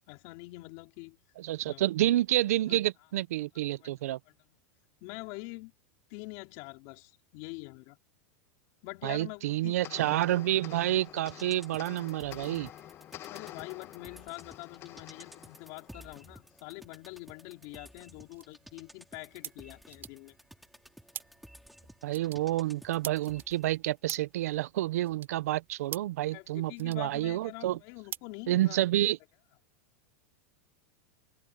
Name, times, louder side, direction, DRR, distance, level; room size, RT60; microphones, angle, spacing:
voice 1, 0.1-1.2 1.6-1.8 2.7-2.8 3.5-3.9 4.3-4.6 5.0-5.7 6.1-8.0 8.8-10.1 13.3-20.4 26.3-28.8, left 25 dB, 50° left, 4.3 m, -45 dB
voice 2, 1.4-4.2 9.0-12.7 22.0-27.8 28.5-29.2, right 14 dB, 80° right, 0.6 m, -29 dB
sound 1, 9.8-16.5, left 12 dB, 30° left, 0.8 m, -48 dB
sound 2, 11.0-23.9 24.2-24.3, equal, ahead, 5.0 m, -55 dB
sound 3, 17.6-29.1, right 9 dB, 25° right, 3.2 m, -48 dB
supercardioid pair, 145°, 8 cm